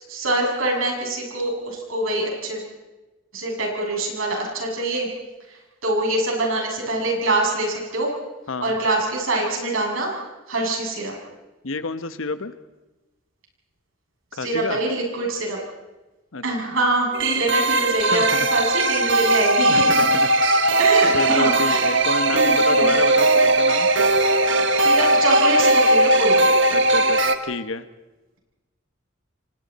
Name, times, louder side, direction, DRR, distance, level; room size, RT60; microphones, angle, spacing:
voice 1, 0.1-2.6 3.3-5.1 5.5-8.1 8.6-10.2 10.5-11.1 14.3-15.6 16.4-20.2 20.8-22.0 22.3-22.9 24.8-26.5, right 2 dB, 90° right, -1 dB, 7.2 m, -24 dB
voice 2, 11.6-12.5 14.3-14.8 16.3-16.4 17.7-18.5 19.7-20.6 21.1-23.9 26.7-27.8, left 3 dB, 80° left, 11 dB, 1.1 m, -29 dB
sound 1, 17.1-27.4, right 2 dB, 65° right, 1.3 m, -18 dB
29.5 x 24.5 x 4.3 m, 1.1 s
head